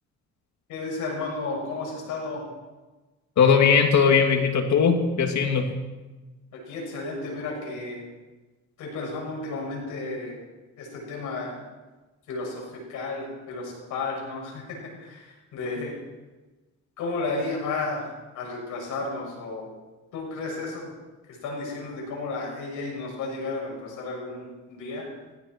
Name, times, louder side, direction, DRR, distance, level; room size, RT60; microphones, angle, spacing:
voice 1, 0.7-2.4 6.7-8.0 8.8-10.3 10.8-11.6 12.3-14.6 15.0-15.9 17.0-18.1 18.3-19.6 20.1-20.9 21.4-25.1, left 3 dB, 90° left, -2 dB, 6.9 m, -32 dB
voice 2, 3.4-5.7, left 6 dB, 65° left, 4 dB, 2.6 m, -19 dB
18.0 x 16.5 x 4.6 m, 1.2 s
cardioid pair, 90°, 30 cm